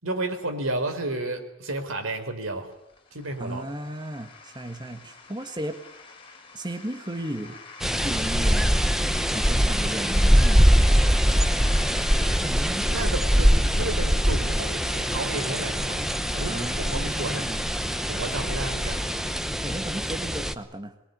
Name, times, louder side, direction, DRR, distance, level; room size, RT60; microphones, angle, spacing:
voice 1, 0.0-2.7 3.1-3.7 12.9-17.5 18.1-19.1, right 2 dB, 80° right, 6 dB, 4.4 m, -32 dB
sound 1, 2.3-19.4, left 4 dB, 25° left, 4.9 m, -46 dB
voice 2, 3.4-5.8 6.5-7.6 8.0-8.9 9.3-10.6 11.6-11.7 12.4-12.9 16.5-17.7 19.6-21.1, right 1 dB, 20° right, 6 dB, 1.6 m, -35 dB
sound 2, 7.8-20.5, equal, ahead, 0.9 m, -23 dB
23.5 x 22.0 x 9.7 m, 0.83 s
head